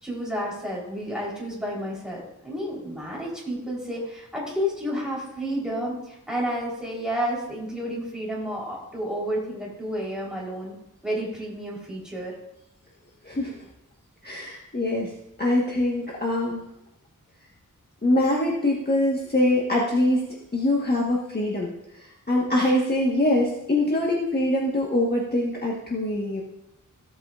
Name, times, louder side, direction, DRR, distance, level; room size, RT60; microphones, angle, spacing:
voice 1, 0.0-10.7 11.0-12.3, equal, ahead, -4 dB, 3.8 m, -31 dB
voice 2, 13.2-13.6 14.2-15.1 15.4-16.7 18.0-26.4, left 1 dB, 30° left, -3 dB, 1.4 m, -24 dB
15.5 x 8.1 x 2.5 m, 0.86 s
wide cardioid pair, 100°, 32 cm